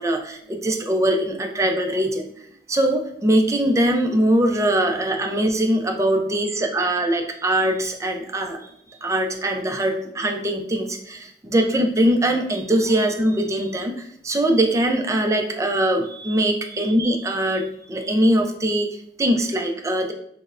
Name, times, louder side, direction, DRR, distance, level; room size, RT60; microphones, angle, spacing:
voice 1, 0.0-2.2 2.7-8.7 9.0-20.1, right 1 dB, 15° right, 3 dB, 0.4 m, -22 dB
6.2 x 2.1 x 2.4 m, 0.73 s
head